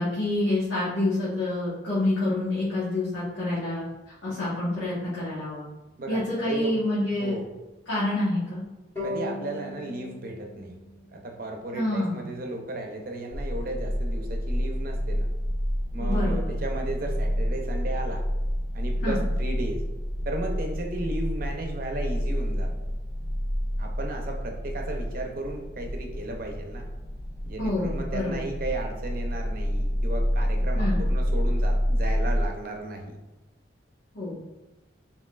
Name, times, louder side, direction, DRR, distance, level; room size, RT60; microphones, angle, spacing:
voice 1, 0.0-5.7 6.1-7.3 7.9-8.6 11.7-12.3 16.0-16.6 19.0-19.2 27.6-28.4 30.7-31.0 34.1-34.4, left 1 dB, 80° left, -10 dB, 1.3 m, -27 dB
voice 2, 6.0-6.7 7.1-7.5 9.0-10.8 11.1-15.3 15.9-18.2 18.7-19.8 20.3-22.7 23.8-26.9 27.4-33.2, right 2 dB, 50° right, 2 dB, 0.6 m, -35 dB
sound 1, 9.0-12.2, left 1 dB, 15° left, 1.2 m, -39 dB
sound 2, 13.3-32.5, equal, 50° left, 0.5 m, -28 dB
4.3 x 3.7 x 2.4 m, 1.1 s
head